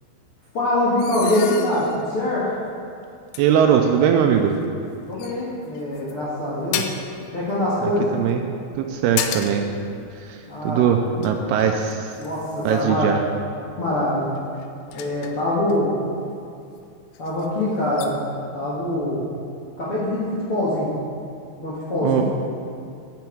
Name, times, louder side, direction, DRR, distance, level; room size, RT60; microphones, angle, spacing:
voice 1, 0.5-2.5 5.1-6.9 7.3-8.1 10.4-10.9 12.2-13.1 13.8-14.3 14.9-15.9 17.2-18.1 18.5-19.2 19.8-20.9 21.6-22.2, left 1 dB, 50° left, -9 dB, 1.6 m, -23 dB
sound 1, 1.0-2.1 2.7-2.8 3.3-3.4 4.6-4.9 5.2-6.1 6.7-7.2 8.7-9.7 10.0-10.2 10.9-12.9 14.3-15.8 16.8-16.9 17.1-17.5 17.9-18.1, left 9 dB, 80° left, 2.5 m, -33 dB
voice 2, 3.4-4.6 6.8-6.9 7.8-8.4 8.8-9.7 10.2-12.1 12.7-13.2 22.0-22.2, right 8 dB, 80° right, 4 dB, 2.4 m, -20 dB
10.5 x 9.1 x 4.6 m, 2.5 s
omnidirectional pair, 5.0 m